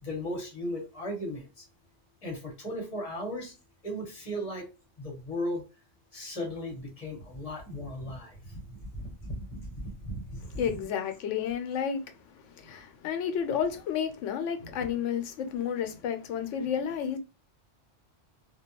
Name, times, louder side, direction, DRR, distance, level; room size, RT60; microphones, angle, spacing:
voice 1, 0.0-1.6 2.2-3.5 3.8-4.6 5.0-5.6 6.1-10.8, left 1 dB, 35° left, 0.9 m, -36 dB
voice 2, 10.6-12.0 12.6-17.2, left 8 dB, 85° left, 0.9 m, -31 dB
2.3 x 2.1 x 2.8 m
omnidirectional pair, 1.2 m